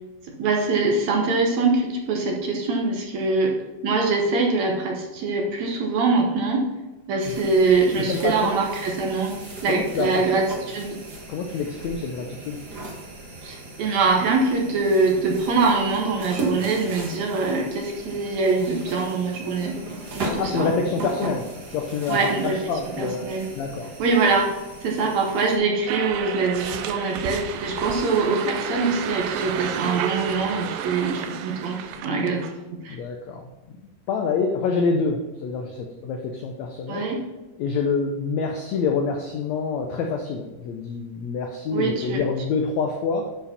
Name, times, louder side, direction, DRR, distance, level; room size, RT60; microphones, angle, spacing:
voice 1, 0.4-3.6 3.8-6.7 7.1-11.0 13.4-19.8 20.1-20.7 22.1-22.6 23.0-23.5 24.0-24.6 24.8-32.5 32.7-33.0 36.9-37.2 41.7-42.2, right 3 dB, 65° right, 0 dB, 1.9 m, -23 dB
sound 1, 7.2-25.6, right 1 dB, 45° right, 1.3 m, -37 dB
voice 2, 8.0-8.5 9.7-10.3 11.3-12.6 20.4-23.3 23.5-23.9 32.8-33.5 34.1-37.2 37.6-43.3, left 4 dB, 85° left, 3 dB, 1.5 m, -27 dB
sound 2, 25.9-32.5, right 9 dB, 80° right, 2.1 m, -31 dB
10.5 x 4.8 x 4.1 m, 1.1 s
omnidirectional pair, 3.9 m